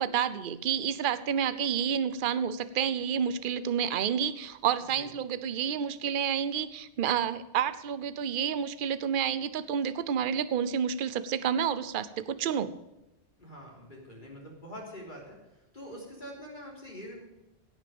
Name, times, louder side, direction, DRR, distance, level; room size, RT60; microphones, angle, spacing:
voice 1, 0.0-12.7, right 8 dB, 55° right, 14 dB, 0.8 m, -29 dB
voice 2, 13.4-15.4 15.7-17.2, equal, 45° left, -2 dB, 3.7 m, -44 dB
17.5 x 6.4 x 7.0 m, 0.98 s
omnidirectional pair, 1.2 m